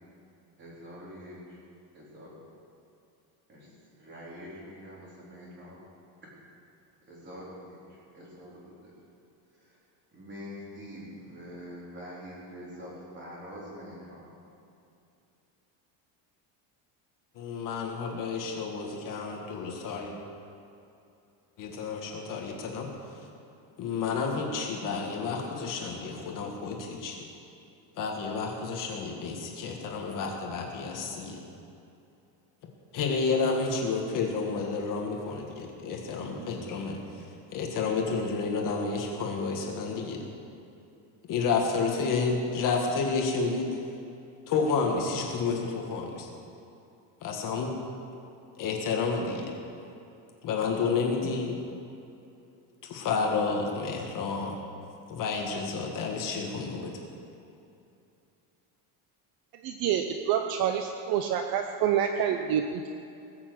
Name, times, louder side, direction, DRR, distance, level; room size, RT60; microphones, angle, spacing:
voice 1, 0.6-1.6 1.9-2.3 3.5-5.8 6.2-6.3 7.1-8.9 9.5-9.8 10.1-14.2, equal, 20° right, -5 dB, 4.1 m, -45 dB
voice 2, 17.4-20.1 21.6-22.9 23.8-27.2 28.0-31.4 32.9-37.3 37.5-40.2 41.3-43.7 44.5-46.3 47.2-47.7 48.6-49.5 50.4-51.6 52.8-54.6 55.1-56.9, left 4 dB, 40° left, 1 dB, 1.7 m, -30 dB
voice 3, 59.6-62.9, right 9 dB, 45° right, 5 dB, 0.7 m, -27 dB
19.5 x 7.2 x 7.9 m, 2.7 s
cardioid pair, 175°, 49 cm